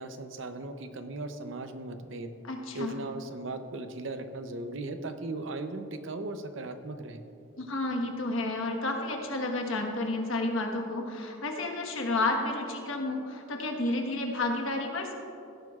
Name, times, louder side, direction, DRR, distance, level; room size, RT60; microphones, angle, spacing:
voice 1, 0.0-2.3 2.7-7.2, right 2 dB, 65° right, 8 dB, 0.7 m, -37 dB
voice 2, 2.4-3.0 7.6-15.1, left 2 dB, 75° left, 2 dB, 1.4 m, -31 dB
17.0 x 10.5 x 2.4 m, 2.8 s
head